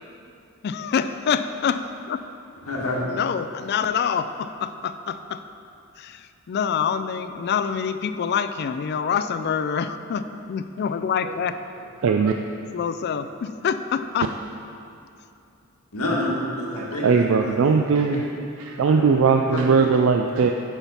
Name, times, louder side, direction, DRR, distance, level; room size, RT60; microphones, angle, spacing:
voice 1, 0.6-2.2 3.0-5.4 6.0-11.5 12.7-14.3, left 7 dB, 50° left, 11 dB, 0.3 m, -26 dB
voice 2, 2.7-3.1 15.9-18.3 18.9-19.8, left 1 dB, 90° left, -3 dB, 1.5 m, -29 dB
voice 3, 12.0-12.3 16.8-18.2 18.6-20.5, right 5 dB, 65° right, 4 dB, 0.3 m, -19 dB
7.1 x 5.8 x 5.5 m, 2.6 s
head